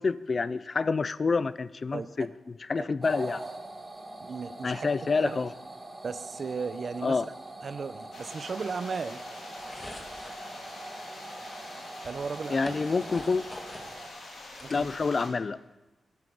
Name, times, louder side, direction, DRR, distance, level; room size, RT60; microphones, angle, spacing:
voice 1, 0.0-2.3 2.7-3.4 4.6-5.5 7.0-7.3 12.5-13.4 14.7-15.6, left 4 dB, 35° left, 17 dB, 0.4 m, -28 dB
sound 1, 3.0-14.1, right 2 dB, 20° right, 1.6 m, -43 dB
voice 2, 4.2-4.9 5.2-5.4 6.0-7.3 7.6-9.2 12.0-12.8 14.6-14.9, right 5 dB, 45° right, 13 dB, 0.6 m, -35 dB
sound 2, 8.1-15.3, left 2 dB, 75° left, 3.6 m, -45 dB
sound 3, 9.6-10.4 11.5-11.6 12.0-13.9 14.3-15.4, left 1 dB, 15° left, 1.6 m, -45 dB
12.0 x 8.9 x 6.2 m, 1.1 s
wide cardioid pair, 145°, 0 cm